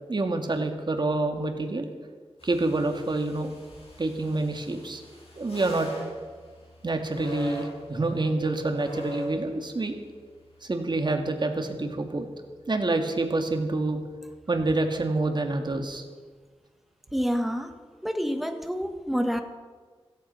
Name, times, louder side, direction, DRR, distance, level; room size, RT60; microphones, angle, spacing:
voice 1, 0.1-1.9 2.4-3.5 4.0-5.0 5.4-5.9 6.8-10.0 10.6-12.3 12.7-14.0 14.5-16.0, right 2 dB, 45° right, 5 dB, 2.1 m, -27 dB
sound 1, 2.4-14.2, equal, 65° left, 5.5 m, -43 dB
voice 2, 17.1-17.7 18.0-19.4, equal, ahead, 6 dB, 1.5 m, -28 dB
17.0 x 15.0 x 5.7 m, 1.5 s
wide cardioid pair, 90°, 11 cm